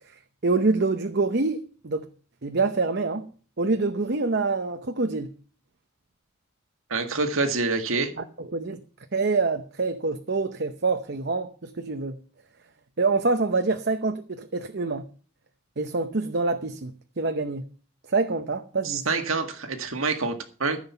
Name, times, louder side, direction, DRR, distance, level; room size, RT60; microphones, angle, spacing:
voice 1, 0.4-2.1 2.4-3.3 3.6-5.3 8.2-8.8 9.1-12.2 13.0-15.1 15.8-17.6 18.1-19.1, right 3 dB, 50° right, 0.8 m, -26 dB
voice 2, 6.9-8.1 18.8-20.8, right 3 dB, 75° right, 1.8 m, -26 dB
14.5 x 7.6 x 5.6 m
head